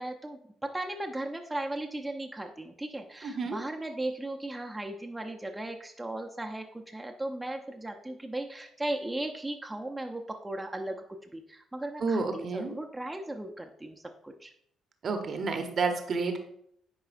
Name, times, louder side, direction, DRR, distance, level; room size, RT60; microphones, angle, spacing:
voice 1, 0.0-14.5, right 1 dB, 10° right, 2 dB, 0.7 m, -37 dB
voice 2, 3.2-3.6 12.0-12.8 15.0-16.4, right 4 dB, 45° right, 6 dB, 0.9 m, -30 dB
9.6 x 4.7 x 2.5 m, 0.71 s
figure-of-eight pair, 45°, 0 cm